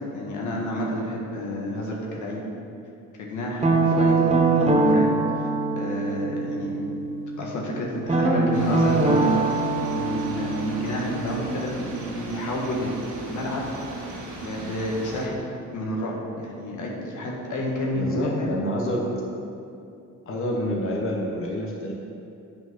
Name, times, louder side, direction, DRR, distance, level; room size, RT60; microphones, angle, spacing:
voice 1, 0.1-2.4 3.2-5.1 5.8-6.8 7.4-12.9 13.3-13.7 14.4-15.4 15.7-18.5, equal, 80° left, -2 dB, 1.7 m, -30 dB
Guitar, 3.6-7.4 8.1-12.8, right 3 dB, 20° right, 1.3 m, -23 dB
sound 1, 8.5-15.3, right 1 dB, 80° right, 1.8 m, -37 dB
voice 2, 17.9-19.1 20.3-21.9, equal, 45° left, -1 dB, 1.3 m, -28 dB
8.2 x 5.6 x 6.1 m, 2.7 s
cardioid pair, 90°, 30 cm